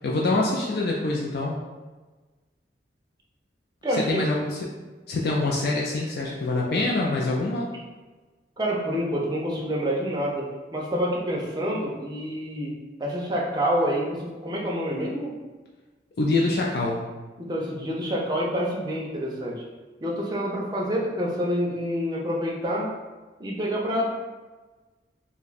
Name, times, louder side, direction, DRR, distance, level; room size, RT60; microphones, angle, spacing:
voice 1, 0.0-1.5 4.1-4.6 5.1-7.7 16.2-17.0, left 2 dB, 60° left, -3 dB, 0.4 m, -25 dB
voice 2, 3.8-4.2 8.6-12.7 13.0-15.3 17.4-19.6 20.0-22.9 23.4-24.2, equal, 25° right, -2 dB, 0.5 m, -27 dB
2.5 x 2.2 x 3.9 m, 1.3 s
head